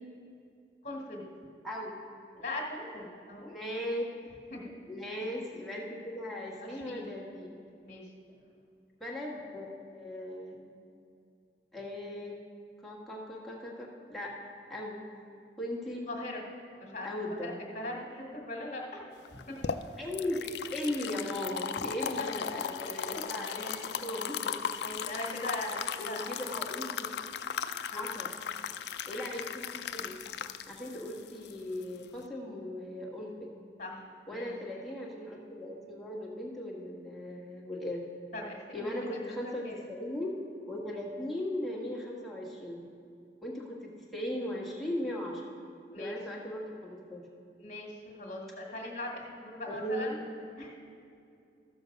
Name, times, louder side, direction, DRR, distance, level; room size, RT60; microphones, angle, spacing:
voice 1, 0.8-1.3 2.3-3.5 4.5-4.6 6.6-7.1 7.8-8.1 16.1-16.4 16.8-17.1 17.4-19.0 19.3-19.6 20.8-21.0 22.2-23.8 24.4-24.5 24.8-26.5 27.9-28.1 33.8-34.5 38.3-38.9 39.3-39.8 45.9-46.2 47.6-47.9 48.2-50.2 50.6-50.7, left 1 dB, 40° left, 0 dB, 1.7 m, -40 dB
voice 2, 3.5-4.0 4.9-7.5 8.3-8.4 9.0-9.7 9.9-10.5 11.7-12.4 12.8-14.3 14.7-15.0 15.6-16.0 17.0-17.6 20.0-24.5 26.0-26.9 27.9-28.3 29.1-30.2 30.7-33.5 34.3-38.0 38.7-40.3 40.7-42.9 43.4-45.4 45.9-47.2 49.6-50.2, left 1 dB, ahead, -4 dB, 1.5 m, -38 dB
sound 1, 19.3-32.2, left 7 dB, 65° left, 0.4 m, -37 dB
13.5 x 7.0 x 5.2 m, 2.5 s
head